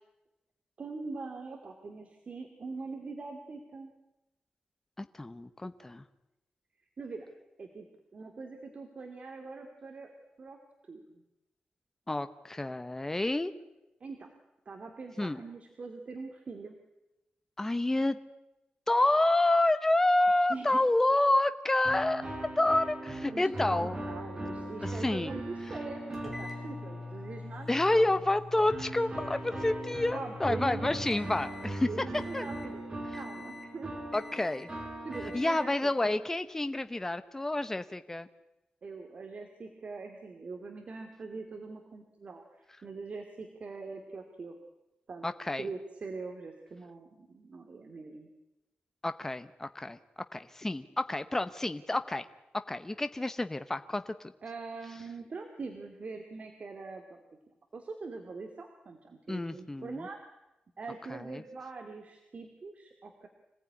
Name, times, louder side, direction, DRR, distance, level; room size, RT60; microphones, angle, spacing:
voice 1, 0.8-3.9 7.0-7.3 7.6-7.9 8.1-10.1 10.4-10.6 10.8-11.2 14.0-14.3 14.7-16.8 20.5-20.8 23.3-28.1 30.1-31.0 31.9-34.0 35.0-36.2 38.8-44.6 45.1-45.3 45.6-48.3 54.4-57.2 57.7-60.2 60.8-63.3, right 4 dB, 45° right, 4 dB, 2.5 m, -43 dB
voice 2, 5.0-6.0 12.1-13.5 15.2-15.4 17.6-18.2 18.9-24.0 24.8-25.3 27.7-31.9 32.3-32.5 34.1-34.7 35.3-38.3 45.2-45.7 49.0-50.0 50.3-52.3 52.7-54.3 59.3-60.1 61.1-61.4, left 2 dB, 15° left, 11 dB, 0.9 m, -29 dB
sound 1, 21.8-27.6 28.7-36.1, right 1 dB, 25° right, 4.6 m, -40 dB
sound 2, 26.1-31.8 32.1-32.7 33.1-33.8 34.1-34.7 35.1-35.7, left 3 dB, ahead, 5.6 m, -45 dB
26.0 x 18.0 x 9.8 m, 0.96 s
wide cardioid pair, 155°, 3 cm